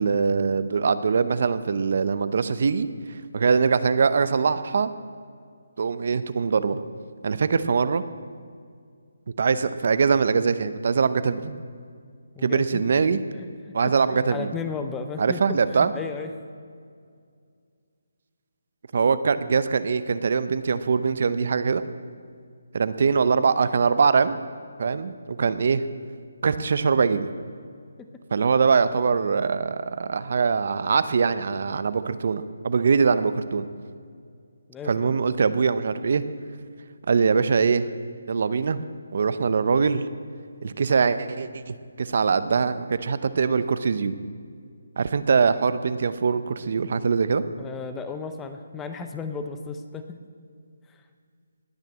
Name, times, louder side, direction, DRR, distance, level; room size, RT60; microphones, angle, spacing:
voice 1, 0.0-2.9 3.3-4.9 5.8-6.8 7.2-8.0 9.4-11.6 12.4-13.2 13.7-14.5 15.2-15.9 18.9-21.8 22.7-24.4 24.8-25.8 26.4-27.3 28.3-33.6 34.8-36.2 37.1-37.8 38.3-38.8 39.1-40.0 40.6-44.1 45.0-47.4, right 5 dB, 50° right, 13 dB, 0.7 m, -22 dB
voice 2, 12.4-12.8 13.4-13.5 13.8-16.3 28.0-28.1 34.7-35.1 47.6-50.2 50.9-51.0, left 5 dB, 10° left, 7 dB, 0.6 m, -35 dB
19.0 x 6.6 x 8.5 m, 2.2 s
hypercardioid pair, 165°, 0 cm